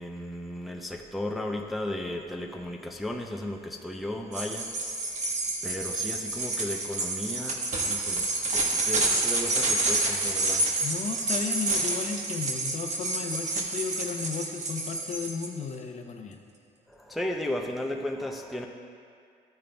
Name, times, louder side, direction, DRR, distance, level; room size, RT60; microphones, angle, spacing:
voice 1, 0.0-4.7 5.6-8.3 8.5-10.7 16.9-18.7, left 1 dB, ahead, 1 dB, 0.6 m, -35 dB
sound 1, 4.3-15.5, right 2 dB, 45° right, 1.3 m, -29 dB
voice 2, 10.8-16.4, left 5 dB, 45° left, 4 dB, 0.8 m, -34 dB
13.0 x 8.8 x 2.3 m, 2.2 s
cardioid pair, 110°, 17 cm